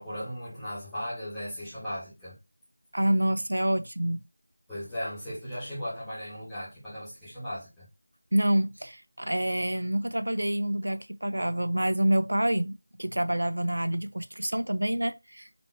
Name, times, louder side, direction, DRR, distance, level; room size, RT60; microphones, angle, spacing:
voice 1, 0.0-2.3 4.7-7.8, equal, 5° left, 1.7 m, -37 dB
voice 2, 2.9-4.2 8.3-15.5, right 1 dB, 80° right, 0.7 m, -27 dB
4.3 x 3.3 x 2.9 m
figure-of-eight pair, 175°, 0 cm